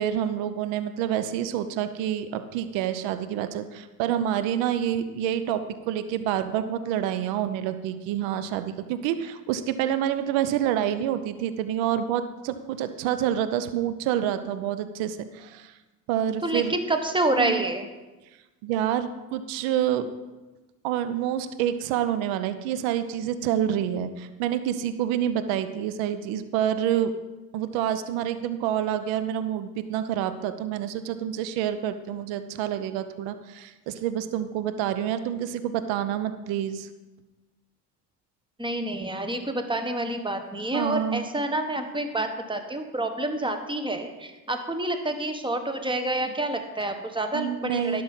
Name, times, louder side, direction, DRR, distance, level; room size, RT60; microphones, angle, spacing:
voice 1, 0.0-15.8 16.1-16.7 17.4-17.6 18.6-20.1 20.8-27.1 27.5-36.9 40.7-41.2 47.3-48.0, right 10 dB, 65° right, 11 dB, 0.9 m, -27 dB
voice 2, 16.4-17.9 38.6-48.0, right 1 dB, 10° right, 6 dB, 1.5 m, -28 dB
11.5 x 6.6 x 5.7 m, 1.1 s
hypercardioid pair, 65°, 48 cm